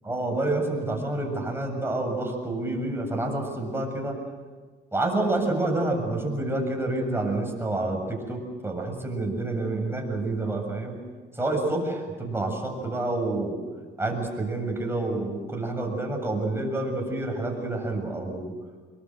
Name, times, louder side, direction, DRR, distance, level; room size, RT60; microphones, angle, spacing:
voice 1, 0.1-4.2 4.9-11.0 11.4-13.6 14.0-18.5, right 2 dB, 10° right, 2 dB, 7.4 m, -28 dB
26.5 x 23.0 x 8.0 m, 1.4 s
cardioid pair, 90°, 20 cm